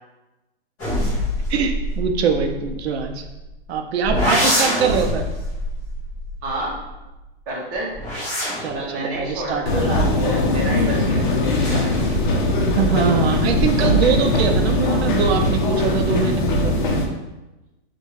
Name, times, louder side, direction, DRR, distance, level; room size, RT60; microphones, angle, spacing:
sound 1, 0.8-3.5 4.0-7.1 7.7-10.8 11.6-12.5 12.8-13.4, left 1 dB, 10° left, 0.3 m, -26 dB
voice 1, 1.5-3.2 3.7-5.3 8.6-10.2 12.7-16.9, right 6 dB, 85° right, 4 dB, 0.5 m, -23 dB
voice 2, 6.4-6.8 7.5-7.9 8.7-11.8, right 1 dB, 25° right, -5 dB, 0.8 m, -29 dB
sound 2, 9.7-17.1, left 1 dB, 50° left, 0.6 m, -20 dB
3.5 x 2.2 x 3.1 m, 1.0 s
hypercardioid pair, 170°, 31 cm